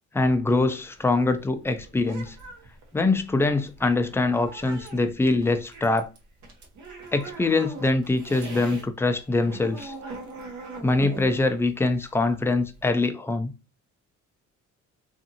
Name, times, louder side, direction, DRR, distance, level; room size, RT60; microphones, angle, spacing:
voice 1, 0.1-2.4 2.9-6.1 7.1-9.9 10.8-13.5, left 2 dB, 10° left, 0.4 m, -23 dB
sound 1, 0.8-8.9 9.2-12.9, right 3 dB, 70° right, 0.9 m, -41 dB
2.6 x 2.5 x 2.7 m
cardioid pair, 90°, 30 cm